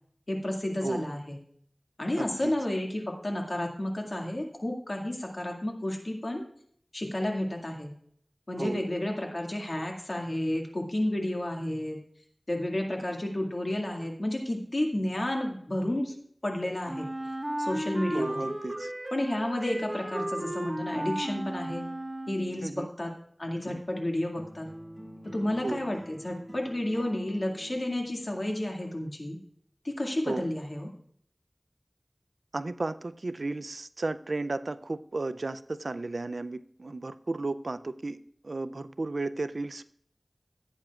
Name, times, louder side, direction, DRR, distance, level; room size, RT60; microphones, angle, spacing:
voice 1, 0.3-1.4 2.0-6.4 6.9-7.9 8.5-12.0 12.5-16.2 16.4-17.1 17.6-18.4 19.1-21.8 22.3-23.1 23.4-24.7 25.3-29.4 29.8-30.9, left 1 dB, 60° left, 1 dB, 2.0 m, -31 dB
voice 2, 2.2-2.5 8.6-8.8 18.1-18.9 22.6-22.9 25.6-25.8 30.3-30.5 32.5-39.8, right 2 dB, 85° right, 13 dB, 0.4 m, -34 dB
Wind instrument woodwind instrument, 16.9-22.6, right 1 dB, 30° right, 1.4 m, -34 dB
sound 1, 24.4-28.5, equal, 5° left, 2.3 m, -46 dB
16.5 x 8.6 x 2.4 m, 0.64 s
wide cardioid pair, 50°, 0 cm